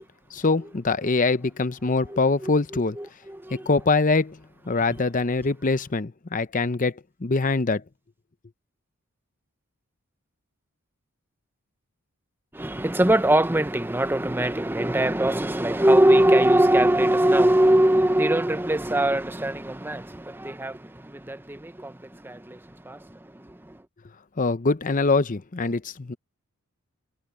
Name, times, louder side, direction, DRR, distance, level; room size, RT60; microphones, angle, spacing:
voice 1, 0.3-3.0 3.7-4.4 4.7-6.9 7.2-7.8 24.4-26.1, left 3 dB, 40° left, 0.7 m, -23 dB
voice 2, 2.1-3.7 12.5-22.6 22.8-23.8, right 1 dB, 10° right, 0.7 m, -22 dB
head